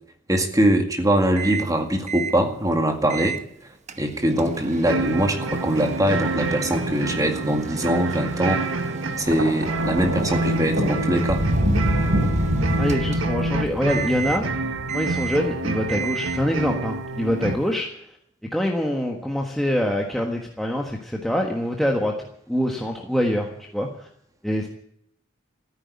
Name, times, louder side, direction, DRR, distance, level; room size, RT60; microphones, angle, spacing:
voice 1, 0.3-3.4 4.0-8.6 9.2-11.4, right 1 dB, 20° right, 5 dB, 2.1 m, -22 dB
Microwave oven, 1.4-1.8 2.1-2.4 3.1-3.5 3.9-13.5 13.9-14.5 14.9-15.5 15.9-16.5, right 4 dB, 35° right, 1.0 m, -34 dB
sound 1, 4.8-17.6, right 2 dB, 90° right, 1.6 m, -28 dB
Thunder, 9.2-15.6 16.5-16.8, equal, 70° right, 4.0 m, -26 dB
voice 2, 12.8-14.5 14.9-17.9 18.5-22.1 22.5-23.5 23.7-24.1 24.4-24.7, equal, ahead, 0 dB, 1.5 m, -24 dB
15.0 x 9.7 x 9.7 m, 0.69 s
head